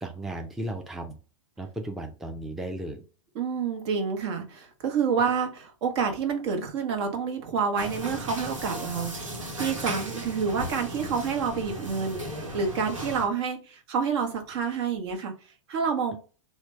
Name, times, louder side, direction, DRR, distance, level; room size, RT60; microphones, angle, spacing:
voice 1, 0.0-1.2 1.6-3.0, right 1 dB, ahead, 0.4 m, -35 dB
voice 2, 3.3-16.2, right 6 dB, 55° right, 1.0 m, -28 dB
sound 1, 7.8-13.3, right 1 dB, 85° right, 1.0 m, -36 dB
3.3 x 2.2 x 3.1 m
hypercardioid pair, 105°, 16 cm